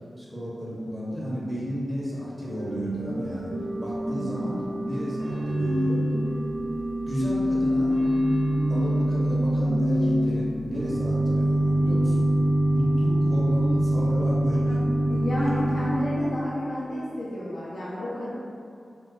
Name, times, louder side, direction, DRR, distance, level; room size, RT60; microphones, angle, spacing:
voice 1, 0.2-3.5 3.8-6.0 7.1-8.0 8.7-12.3 12.7-14.8 15.6-15.7, equal, 10° right, -8 dB, 0.8 m, -33 dB
Organ / Church bell, 2.4-16.6, right 1 dB, 60° right, 0.4 m, -25 dB
voice 2, 15.1-18.3, left 1 dB, 85° left, -9 dB, 0.5 m, -30 dB
2.4 x 2.4 x 3.7 m, 2.4 s
wide cardioid pair, 80°, 0 cm